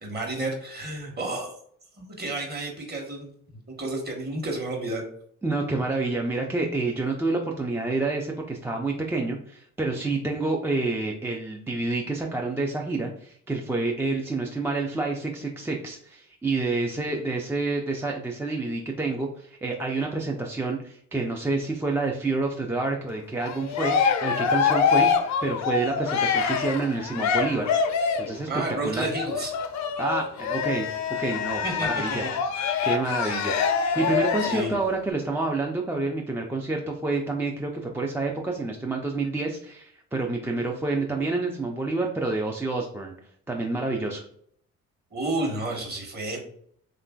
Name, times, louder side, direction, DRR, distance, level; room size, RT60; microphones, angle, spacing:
voice 1, 0.0-1.5 2.0-3.3 3.7-5.0 28.5-29.5 31.6-32.3 34.4-34.7 45.1-46.4, right 2 dB, 30° right, 0 dB, 1.1 m, -31 dB
voice 2, 5.4-24.0 24.2-28.5 28.8-29.1 30.0-30.9 31.2-32.2 32.8-43.1 43.5-44.2, right 3 dB, 10° right, 0 dB, 0.3 m, -28 dB
Cheering, 23.4-28.4 29.1-34.7, left 6 dB, 55° left, 0.4 m, -25 dB
3.0 x 2.5 x 2.2 m, 0.64 s
supercardioid pair, 60°, 34 cm